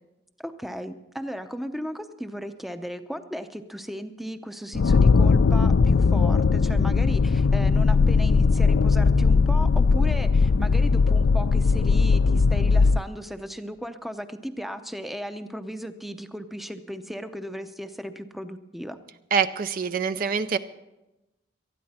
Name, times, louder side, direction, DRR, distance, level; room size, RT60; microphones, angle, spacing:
voice 1, 0.4-19.0, equal, ahead, 9 dB, 0.6 m, -36 dB
sound 1, 4.7-13.0, left 4 dB, 75° left, 0.4 m, -19 dB
voice 2, 19.3-20.6, right 6 dB, 45° right, 11 dB, 0.5 m, -25 dB
19.0 x 13.0 x 4.2 m, 0.98 s
head